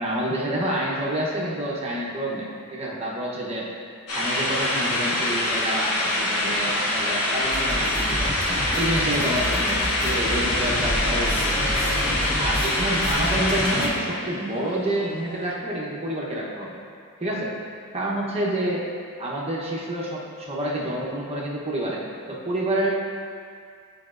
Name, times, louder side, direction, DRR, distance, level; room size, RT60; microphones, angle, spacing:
voice 1, 0.0-3.7 4.1-8.3 8.7-11.7 12.4-16.8 17.2-17.5 17.9-18.8 19.2-22.9, right 1 dB, 30° right, -4 dB, 0.9 m, -28 dB
sound 1, 4.1-13.9, left 1 dB, 90° left, 1.1 m, -25 dB
sound 2, 7.4-15.6, left 2 dB, 40° left, 0.6 m, -40 dB
sound 3, 7.5-13.9, equal, 10° left, 1.3 m, -30 dB
9.4 x 4.9 x 2.5 m, 2.2 s
head